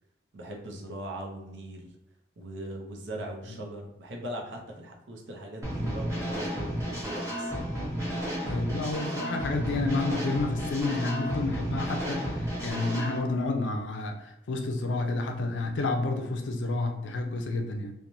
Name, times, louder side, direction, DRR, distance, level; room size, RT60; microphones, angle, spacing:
voice 1, 0.3-1.9 2.4-7.7 8.0-8.1 8.4-8.6, right 1 dB, 75° right, 0 dB, 0.6 m, -40 dB
sound 1, 5.6-13.2, equal, 15° right, 0.8 m, -32 dB
voice 2, 8.4-17.9, left 3 dB, 80° left, 4 dB, 0.4 m, -30 dB
3.0 x 2.1 x 2.6 m, 0.89 s
head